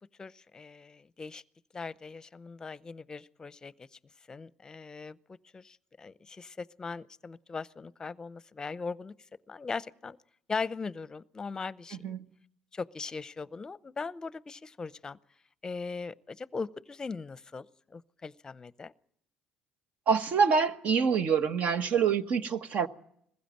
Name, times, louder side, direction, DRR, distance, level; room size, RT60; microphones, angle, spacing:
voice 1, 0.2-1.4 1.7-3.9 4.3-5.2 5.5-9.1 9.5-10.2 10.5-12.1 12.7-15.2 15.6-18.9, left 4 dB, 25° left, 0.7 m, -39 dB
voice 2, 20.1-22.9, right 6 dB, 55° right, 1.3 m, -26 dB
21.0 x 15.5 x 8.9 m
cardioid pair, 100°, 3 cm